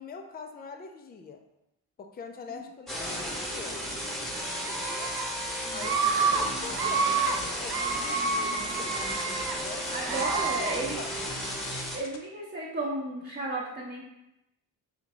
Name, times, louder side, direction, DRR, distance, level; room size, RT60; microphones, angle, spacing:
voice 1, 0.0-1.4 2.0-3.9 4.6-5.2 5.7-11.1, left 5 dB, 25° left, 5 dB, 0.4 m, -44 dB
sound 1, 2.9-12.0, equal, ahead, 0.9 m, -34 dB
Screaming, 4.7-5.2 5.8-6.4 6.7-7.3 7.7-9.6 10.0-10.7, right 5 dB, 60° right, 0.6 m, -29 dB
sound 2, 6.8-12.2, left 6 dB, 70° left, 0.6 m, -46 dB
voice 2, 9.9-11.0 11.9-14.0, right 2 dB, 25° right, -5 dB, 0.8 m, -33 dB
3.5 x 2.7 x 3.0 m, 0.88 s
cardioid pair, 55°, 45 cm